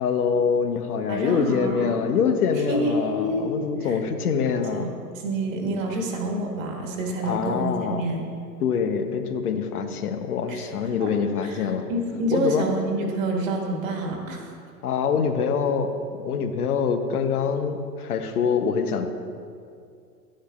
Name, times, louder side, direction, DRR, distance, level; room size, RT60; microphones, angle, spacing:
voice 1, 0.0-4.9 7.2-8.0 8.6-11.9 12.3-12.7 14.8-19.1, left 6 dB, 65° left, 8 dB, 0.8 m, -25 dB
voice 2, 1.1-2.2 2.7-3.5 3.8-4.0 4.7-4.9 5.1-8.3 10.5-10.6 11.0-11.1 11.4-14.5, right 1 dB, 50° right, 1 dB, 1.7 m, -28 dB
10.0 x 9.7 x 2.4 m, 2.3 s
hypercardioid pair, 115°, 49 cm